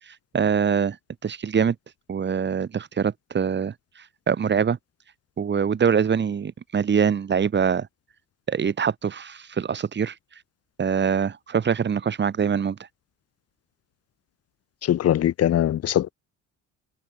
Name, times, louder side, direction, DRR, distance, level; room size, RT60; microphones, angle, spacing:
voice 1, 0.3-1.0 1.2-1.7 2.1-3.7 4.3-4.8 5.4-7.9 8.5-10.1 10.8-12.8, right 7 dB, 35° right, 6.5 m, -23 dB
voice 2, 14.8-16.1, left 11 dB, 55° left, 1.9 m, -21 dB
cardioid pair, 120°, 30 cm